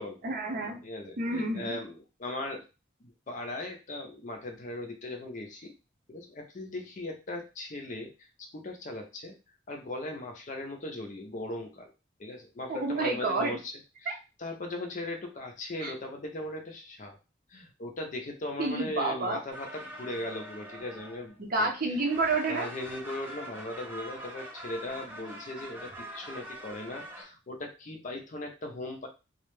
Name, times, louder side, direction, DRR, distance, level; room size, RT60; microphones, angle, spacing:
voice 1, 0.2-0.8 1.2-1.8 12.7-13.6 14.1-14.2 15.8-15.9 18.6-19.4 21.4-22.7, right 3 dB, 50° right, 2 dB, 0.5 m, -29 dB
voice 2, 0.8-2.7 3.0-5.7 6.1-9.3 9.7-11.9 12.2-17.2 17.5-22.0 22.5-29.1, left 1 dB, 40° left, 3 dB, 0.5 m, -39 dB
sound 1, 19.5-21.6 21.9-27.2, right 1 dB, 10° right, 0.9 m, -44 dB
2.3 x 2.1 x 3.1 m, 0.29 s
head